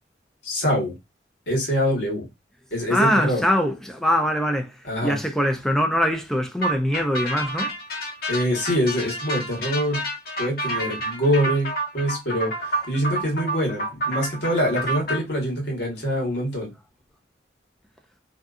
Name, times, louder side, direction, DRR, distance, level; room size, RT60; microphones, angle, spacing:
voice 1, 0.4-0.9 1.5-2.3 2.7-3.4 4.8-5.2 8.3-10.1 10.4-16.7, equal, 70° left, 1.2 m, -24 dB
voice 2, 2.9-7.7, equal, 5° left, 0.3 m, -23 dB
sound 1, 6.6-15.2, right 1 dB, 55° left, 0.7 m, -29 dB
2.6 x 2.4 x 2.3 m
head